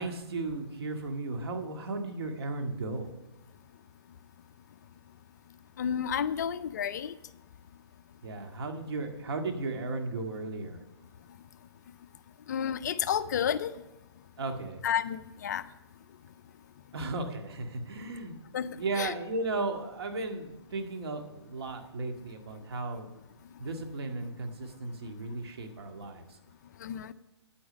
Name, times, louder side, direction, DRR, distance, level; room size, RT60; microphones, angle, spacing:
voice 1, 0.0-3.1 8.2-10.8 14.4-14.8 16.9-18.4 18.7-23.1 23.6-26.4, right 3 dB, 60° right, 4 dB, 1.9 m, -35 dB
voice 2, 5.8-7.2 12.5-13.7 14.8-15.7 18.5-19.1 26.8-27.1, left 8 dB, 40° left, 13 dB, 0.4 m, -31 dB
9.6 x 9.0 x 5.2 m, 1.0 s
hypercardioid pair, 155°, 15 cm